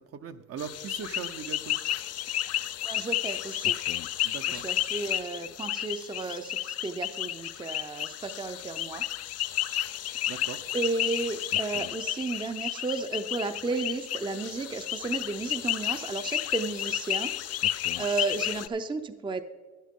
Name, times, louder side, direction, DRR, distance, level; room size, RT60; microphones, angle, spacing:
voice 1, 0.1-1.8 4.2-4.6 10.3-10.6, right 7 dB, 50° right, 9 dB, 0.7 m, -39 dB
sound 1, 0.6-18.7, left 12 dB, 55° left, 0.5 m, -32 dB
voice 2, 2.8-3.8 4.5-9.0 10.7-17.3 17.9-19.4, right 3 dB, 15° right, 9 dB, 0.5 m, -33 dB
11.5 x 10.5 x 3.7 m, 1.4 s
cardioid pair, 90°, 30 cm